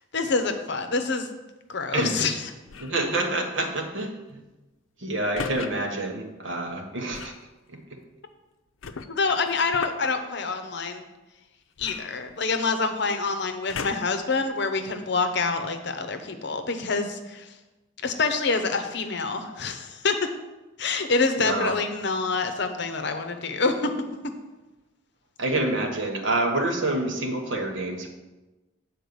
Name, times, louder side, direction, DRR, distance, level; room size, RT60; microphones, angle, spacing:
voice 1, 0.1-1.3 1.7-2.4 9.1-11.0 11.8-17.5 18.0-20.3 20.8-23.9, left 4 dB, 60° left, 7 dB, 0.8 m, -26 dB
voice 2, 1.9-2.3 2.8-4.4 5.0-7.3 7.7-7.8 21.4-21.8 25.4-28.1, right 2 dB, 70° right, 3 dB, 1.3 m, -27 dB
sound 1, 2.7-3.1 5.4-5.7 7.1-7.4 8.8-10.1 11.8-12.8 13.7-14.2 14.9-15.0, left 5 dB, 90° left, 0.6 m, -36 dB
7.9 x 4.4 x 6.9 m, 1.1 s
head